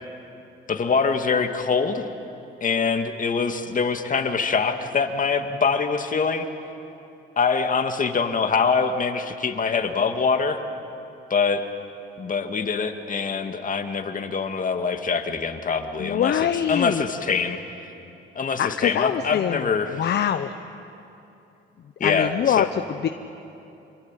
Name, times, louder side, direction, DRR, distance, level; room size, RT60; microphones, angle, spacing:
voice 1, 0.7-2.1 2.6-6.5 7.4-10.6 11.3-11.6 12.2-17.6 18.4-20.0 22.0-22.7, left 5 dB, 40° left, 6 dB, 2.1 m, -24 dB
voice 2, 16.0-17.0 18.6-19.7 19.9-20.5 22.0-23.1, left 9 dB, 60° left, 9 dB, 0.9 m, -24 dB
26.5 x 24.0 x 9.1 m, 2.8 s
cardioid pair, 90°, 20 cm